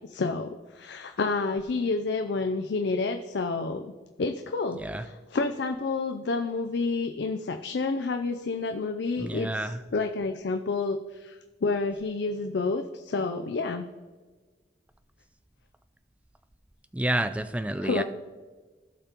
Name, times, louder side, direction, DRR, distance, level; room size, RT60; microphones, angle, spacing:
voice 1, 0.0-3.9 4.2-11.4 11.6-13.9 17.8-18.0, left 3 dB, 75° left, 6 dB, 0.4 m, -29 dB
voice 2, 9.2-9.8 16.9-18.0, right 1 dB, 5° right, 11 dB, 0.3 m, -29 dB
15.5 x 5.7 x 2.9 m, 1.4 s
head